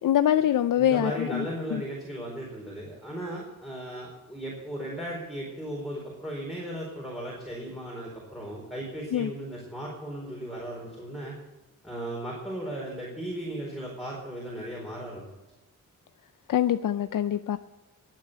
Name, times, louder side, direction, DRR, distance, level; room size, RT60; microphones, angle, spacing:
voice 1, 0.0-1.5 1.7-1.8 9.1-9.3 16.5-17.6, left 11 dB, 75° left, 11 dB, 0.5 m, -24 dB
voice 2, 0.8-11.3 11.8-15.3, right 1 dB, ahead, -4 dB, 4.4 m, -36 dB
19.5 x 9.2 x 6.8 m, 1.0 s
wide cardioid pair, 120°, 32 cm